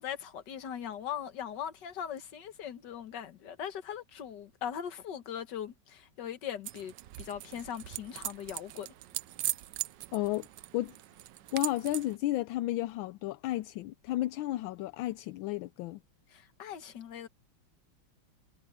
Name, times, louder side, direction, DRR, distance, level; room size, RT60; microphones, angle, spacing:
voice 1, 0.0-8.9 16.3-17.3, left 9 dB, 60° left, 1.9 m, -40 dB
sound 1, 6.6-12.2, right 15 dB, 70° right, 1.2 m, -40 dB
voice 2, 10.1-10.5 10.7-10.9 11.5-16.0, left 15 dB, 80° left, 1.3 m, -32 dB
omnidirectional pair, 2.2 m